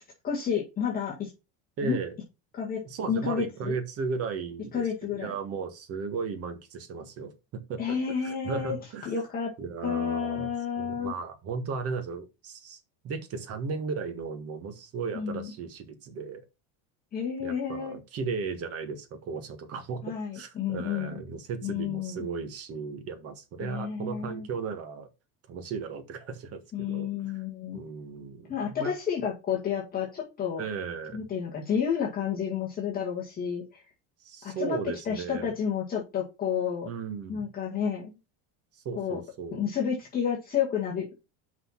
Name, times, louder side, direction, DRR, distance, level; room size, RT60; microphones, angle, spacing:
voice 1, 0.2-1.3 1.8-2.0 2.5-2.8 3.1-3.7 4.7-5.3 7.8-8.8 9.1-9.5 9.8-11.1 15.1-15.5 17.1-18.0 20.0-21.1 21.6-22.3 23.6-24.4 26.7-27.8 28.5-30.6 31.1-33.8 34.4-34.8 35.1-36.9 37.3-38.2 39.0-39.2 39.5-41.3, left 7 dB, 25° left, 1.9 m, -30 dB
voice 2, 1.8-2.1 2.8-4.8 5.1-7.3 7.7-9.1 9.6-10.5 10.8-12.8 13.0-16.5 17.4-25.1 25.5-27.4 27.7-28.9 30.6-31.2 34.2-35.5 36.8-37.5 38.7-39.6, right 5 dB, 40° right, 1.7 m, -35 dB
6.0 x 5.5 x 5.7 m
cardioid pair, 155°, 36 cm